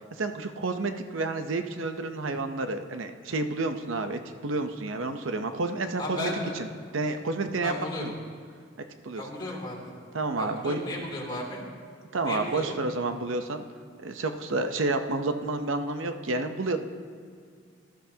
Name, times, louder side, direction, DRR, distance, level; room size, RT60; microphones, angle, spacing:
voice 1, 0.2-6.3 6.9-7.7 8.0-8.1 9.0-9.2 10.1-10.8 12.1-13.6 14.0-16.8, right 3 dB, 80° right, 7 dB, 0.7 m, -30 dB
voice 2, 6.0-6.6 7.6-8.1 9.1-9.9 10.4-11.6 12.2-12.8, left 1 dB, 25° left, -4 dB, 3.0 m, -34 dB
19.0 x 12.5 x 2.8 m, 2.2 s
head